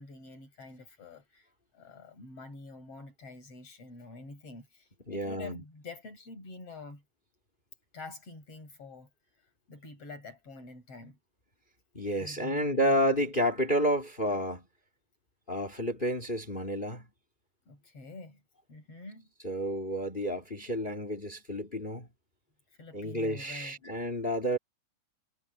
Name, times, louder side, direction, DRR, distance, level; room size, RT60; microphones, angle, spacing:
voice 1, 0.0-1.5 1.7-7.0 7.9-9.1 9.7-11.2 12.2-13.3 17.7-18.4 18.7-19.3 22.8-23.8, left 3 dB, 40° left, 7.1 m, -47 dB
voice 2, 5.1-5.6 11.9-14.7 15.5-17.1 19.4-22.1 22.9-24.6, equal, 20° left, 1.8 m, -30 dB
omnidirectional pair, 4.1 m